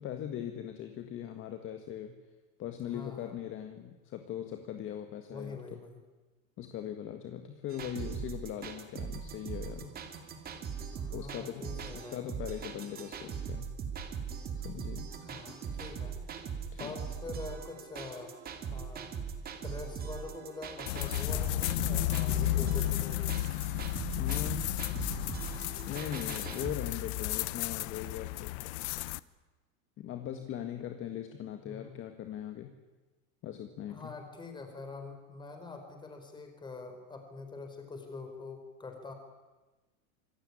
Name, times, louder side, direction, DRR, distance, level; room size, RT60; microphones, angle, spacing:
voice 1, 0.0-2.1 2.6-5.6 6.6-9.9 11.1-11.7 11.9-13.7 14.6-15.1 16.7-16.9 24.2-24.7 25.9-28.7 30.0-32.7 33.4-34.2, left 10 dB, 30° left, 6 dB, 1.8 m, -40 dB
voice 2, 2.9-3.4 5.3-6.0 10.9-12.3 15.2-16.2 16.8-18.4 18.7-19.1 19.6-23.2 31.6-32.0 33.9-39.1, left 3 dB, 10° left, 5 dB, 4.7 m, -45 dB
sound 1, 7.7-26.7, right 6 dB, 20° right, 2.7 m, -40 dB
sound 2, 20.9-29.2, left 17 dB, 55° left, 0.9 m, -33 dB
26.5 x 22.5 x 9.9 m, 1.2 s
supercardioid pair, 165°, 41 cm